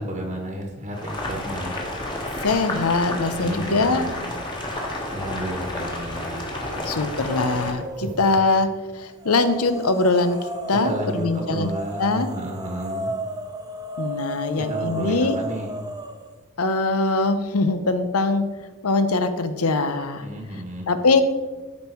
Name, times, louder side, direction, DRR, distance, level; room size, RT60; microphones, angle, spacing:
voice 1, 0.0-1.7 3.4-4.1 5.1-7.2 8.0-8.1 10.8-13.1 14.5-15.7 20.2-20.9, right 1 dB, 35° right, 1 dB, 1.3 m, -32 dB
Boiling, 0.9-7.7, left 1 dB, 20° left, 1.5 m, -31 dB
voice 2, 2.4-4.0 6.9-8.7 9.0-10.4 10.7-11.7 12.0-12.3 14.0-15.4 16.6-18.4 18.8-20.2 20.9-21.2, left 3 dB, 85° left, 10 dB, 0.9 m, -22 dB
sound 1, 5.7-6.2 6.6-8.4 9.2-16.3, right 1 dB, 20° right, 0.6 m, -34 dB
13.0 x 5.4 x 4.6 m, 1.3 s
head